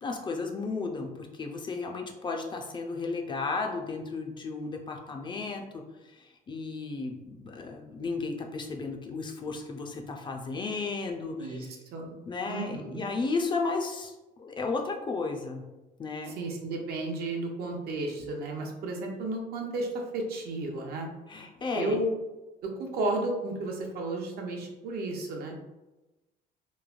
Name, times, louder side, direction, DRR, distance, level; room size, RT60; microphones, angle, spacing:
voice 1, 0.0-5.8 6.1-11.6 12.3-15.6 16.0-16.4 21.3-22.0, left 4 dB, 30° left, 2 dB, 0.4 m, -34 dB
voice 2, 11.4-12.2 12.4-13.1 16.3-21.1 21.7-22.1 22.6-25.5, right 2 dB, 70° right, 1 dB, 0.6 m, -33 dB
3.1 x 2.1 x 2.4 m, 1.1 s
cardioid pair, 110°, 17 cm